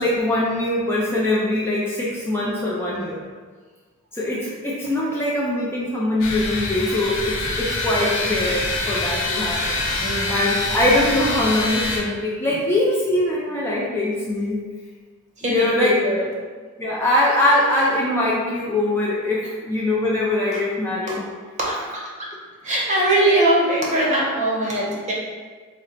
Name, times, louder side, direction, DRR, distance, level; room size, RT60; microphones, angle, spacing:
voice 1, 0.0-3.2 4.1-14.6 15.4-16.0 16.8-21.2 21.7-21.8, left 1 dB, 10° left, -6 dB, 0.4 m, -22 dB
sound 1, 6.2-12.0, left 2 dB, 70° left, 0.6 m, -25 dB
voice 2, 10.0-10.4 15.4-16.3 20.5-20.6 21.1-21.2 21.6-22.3 22.6-25.1, right 1 dB, 35° right, -4 dB, 0.8 m, -21 dB
4.3 x 2.0 x 3.9 m, 1.5 s
head